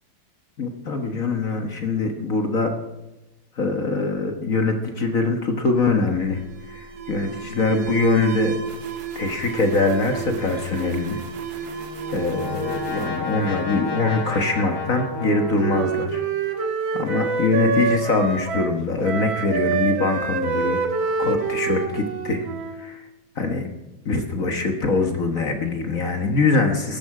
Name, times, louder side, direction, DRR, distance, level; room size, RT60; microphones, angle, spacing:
voice 1, 0.6-2.7 3.6-6.4 6.7-8.6 9.1-11.2 11.6-11.7 12.1-16.2 16.9-20.8 21.2-22.4 22.8-23.0 23.4-23.7 24.0-27.0, left 3 dB, 45° left, 5 dB, 1.6 m, -23 dB
Alarm, 5.6-14.2, right 6 dB, 55° right, 1.5 m, -33 dB
Brass instrument, 11.5-16.3, left 4 dB, 60° left, 2.6 m, -32 dB
Wind instrument woodwind instrument, 15.1-18.8 19.0-23.0, right 5 dB, 85° right, 2.2 m, -26 dB
18.0 x 14.0 x 4.8 m, 1.0 s
omnidirectional pair, 2.1 m